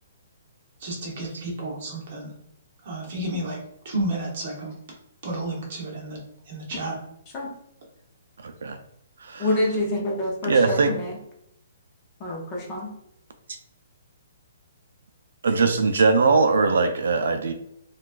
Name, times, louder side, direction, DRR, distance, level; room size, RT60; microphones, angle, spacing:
voice 1, 0.8-2.3 2.8-3.6 3.8-4.7 5.2-6.2 6.5-6.9, right 1 dB, 40° right, -2 dB, 0.9 m, -31 dB
voice 2, 8.4-8.8 9.2-9.5 10.4-10.9 15.4-17.5, right 4 dB, 75° right, 7 dB, 0.4 m, -21 dB
voice 3, 9.4-11.2 12.2-12.9, left 1 dB, 20° left, -1 dB, 0.6 m, -27 dB
3.9 x 2.3 x 2.4 m, 0.75 s
hypercardioid pair, 175°, 0 cm